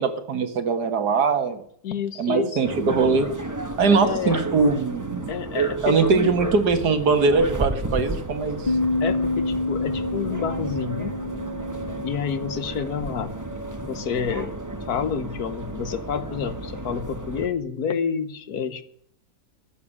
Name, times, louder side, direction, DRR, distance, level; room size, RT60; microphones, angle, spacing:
voice 1, 0.0-1.6 2.2-3.3 3.8-5.3 5.8-8.7, right 4 dB, 70° right, 9 dB, 2.1 m, -21 dB
voice 2, 1.8-2.7 3.9-4.4 5.3-6.3 9.0-11.1 12.0-13.3 13.8-14.5 14.9-18.8, left 7 dB, 65° left, 13 dB, 1.5 m, -29 dB
sound 1, 2.6-17.5, right 2 dB, 10° right, 1.1 m, -32 dB
sound 2, 8.7-13.8, left 2 dB, 45° left, 0.5 m, -29 dB
13.5 x 7.3 x 9.9 m, 0.66 s
omnidirectional pair, 1.8 m